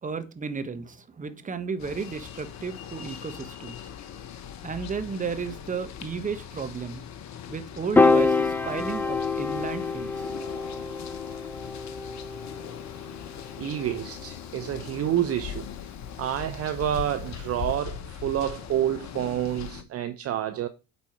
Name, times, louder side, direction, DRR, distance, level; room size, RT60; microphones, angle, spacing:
voice 1, 0.0-3.9 4.6-7.0 7.5-10.3, right 5 dB, 20° right, 1.2 m, -34 dB
sound 1, 1.8-19.8, left 8 dB, 40° left, 1.2 m, -40 dB
Piano, 8.0-14.3, left 3 dB, 5° left, 0.5 m, -26 dB
voice 2, 13.6-15.7 16.2-20.7, right 11 dB, 35° right, 0.8 m, -28 dB
8.5 x 4.5 x 4.6 m
hypercardioid pair, 70°, 41 cm